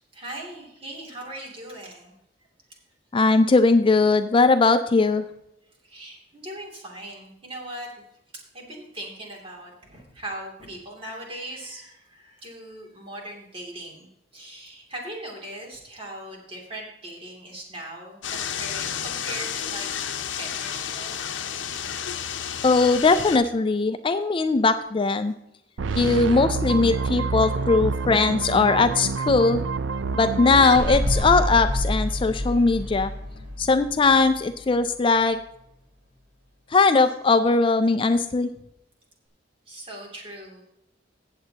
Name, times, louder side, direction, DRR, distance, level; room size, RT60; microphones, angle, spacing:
voice 1, 0.1-2.1 5.8-7.9 8.5-14.1 14.3-19.9 20.3-21.2 22.3-22.4 26.7-27.6 32.5-32.6 32.9-33.0 39.7-40.6, right 1 dB, 30° right, -1 dB, 2.7 m, -39 dB
voice 2, 3.1-5.2 22.6-25.3 26.0-29.6 30.1-33.1 33.6-35.4 36.7-38.5, left 3 dB, 30° left, 10 dB, 0.4 m, -20 dB
sound 1, 18.2-23.4, left 8 dB, 80° left, 0.7 m, -31 dB
sound 2, 25.8-31.9, right 4 dB, 75° right, 0.4 m, -28 dB
sound 3, 30.7-35.2 35.6-35.7, left 1 dB, 45° right, 2.0 m, -28 dB
16.0 x 7.7 x 2.8 m, 0.82 s
head